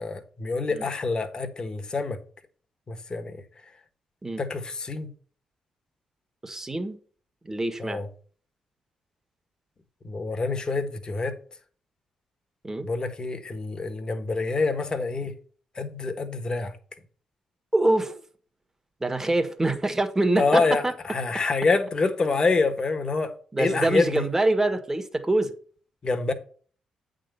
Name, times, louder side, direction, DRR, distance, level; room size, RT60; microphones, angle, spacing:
voice 1, 0.0-2.2 2.9-3.4 4.4-5.1 7.8-8.1 10.0-11.3 12.8-15.3 15.8-16.7 20.4-20.8 21.1-23.3 23.6-24.2 26.0-26.3, left 3 dB, 40° left, 1.4 m, -26 dB
voice 2, 6.4-7.0 7.4-8.0 12.6-12.9 17.7-18.2 19.0-20.9 23.5-25.5, right 2 dB, 20° right, 1.7 m, -25 dB
8.5 x 3.9 x 6.9 m
supercardioid pair, 50°, 2 cm